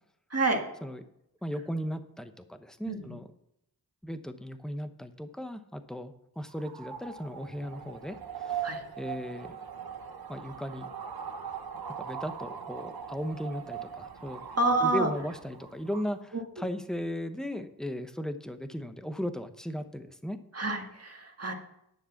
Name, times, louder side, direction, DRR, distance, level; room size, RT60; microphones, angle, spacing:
voice 1, 1.4-3.3 4.0-8.6 9.0-9.6 10.3-10.9 12.0-14.4 14.8-20.4, equal, ahead, 9 dB, 0.9 m, -36 dB
sound 1, 6.4-16.1, right 8 dB, 75° right, 1.0 m, -41 dB
voice 2, 14.6-15.1 16.3-16.4 20.5-21.5, right 2 dB, 40° right, 2 dB, 1.7 m, -28 dB
10.0 x 6.6 x 5.9 m, 0.79 s
wide cardioid pair, 55°, 38 cm